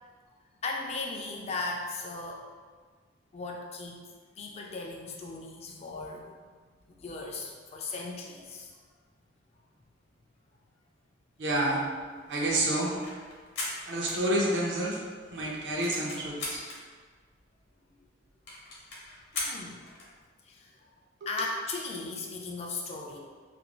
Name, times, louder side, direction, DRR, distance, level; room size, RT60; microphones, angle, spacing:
voice 1, 0.6-2.4 3.3-4.0 4.4-6.3 6.9-8.7 19.3-19.8 20.5-20.7 21.3-23.2, left 3 dB, 30° left, 0 dB, 0.3 m, -37 dB
voice 2, 11.4-11.8 12.3-13.0 13.9-15.0 15.3-16.6 21.2-21.3, right 1 dB, 65° right, -3 dB, 0.6 m, -29 dB
sound 1, 12.2-14.8 15.2-15.3 15.5-16.8 17.4-17.5 17.7-17.8 18.0-18.1 18.5-20.1, left 2 dB, 65° left, 0.7 m, -38 dB
2.6 x 2.2 x 2.9 m, 1.5 s
head